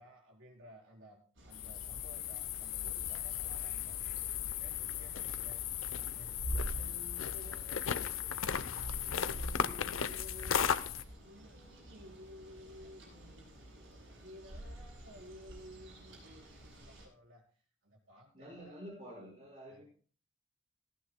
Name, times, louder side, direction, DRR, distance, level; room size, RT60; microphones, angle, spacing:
voice 1, 0.0-4.0 4.4-5.6 5.9-7.8 8.2-13.6 14.0-17.5 17.8-18.8 19.7-19.8, equal, 80° right, -1 dB, 4.3 m, -55 dB
sound 1, 1.4-17.1, equal, 65° right, 7.4 m, -47 dB
sound 2, 1.5-11.0, left 8 dB, 85° left, 0.7 m, -36 dB
voice 2, 18.3-19.8, equal, 35° right, -2 dB, 5.2 m, -49 dB
18.0 x 14.5 x 2.2 m, 0.42 s
head